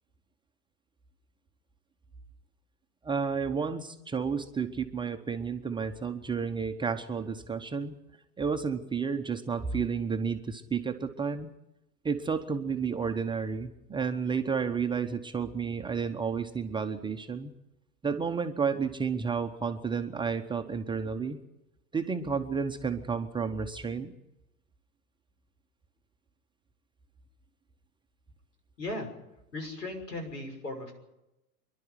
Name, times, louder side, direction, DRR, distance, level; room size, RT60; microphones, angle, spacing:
voice 1, 3.0-7.9 8.4-11.5 12.0-17.5 18.0-21.4 21.9-24.1, right 5 dB, 10° right, 6 dB, 0.9 m, -31 dB
voice 2, 28.8-29.1 29.5-31.0, left 2 dB, 85° left, 5 dB, 6.3 m, -37 dB
26.5 x 11.5 x 9.6 m, 0.92 s
figure-of-eight pair, 105°, 48 cm